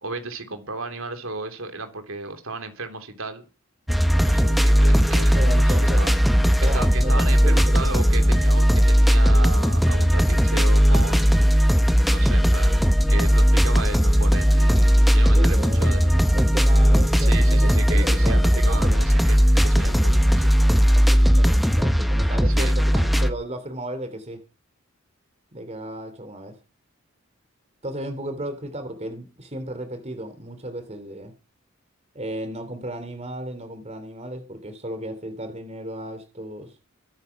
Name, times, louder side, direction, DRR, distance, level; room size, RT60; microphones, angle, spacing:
voice 1, 0.0-3.4 4.3-6.2 6.6-11.5 12.1-16.2 17.2-20.5 22.5-22.7, right 3 dB, 75° right, 3.2 m, -34 dB
sound 1, 3.9-23.3, equal, ahead, 1.2 m, -17 dB
voice 2, 5.3-6.0 6.6-7.9 15.3-19.0 19.8-19.9 20.9-24.4 25.5-26.5 27.8-31.3 32.1-36.7, right 1 dB, 30° right, 2.9 m, -34 dB
23.5 x 9.4 x 5.8 m
head